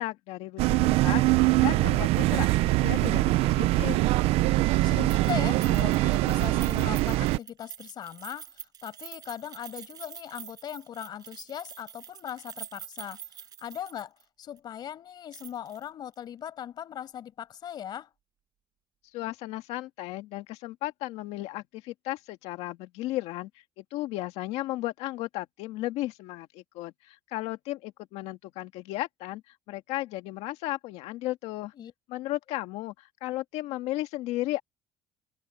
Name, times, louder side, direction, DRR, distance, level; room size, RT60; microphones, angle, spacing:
voice 1, 0.0-4.0 19.1-23.5 23.8-29.4 29.7-31.7 32.1-34.6, left 17 dB, 90° left, 1.9 m, -35 dB
sound 1, 0.6-7.4, right 18 dB, 75° right, 0.7 m, -23 dB
voice 2, 4.8-18.1 31.7-31.9, left 10 dB, 45° left, 5.8 m, -39 dB
Keys jangling, 5.1-14.2 14.6-14.7 15.3-15.8 16.1-16.2, right 9 dB, 40° right, 7.4 m, -46 dB
cardioid pair, 160°, 10 cm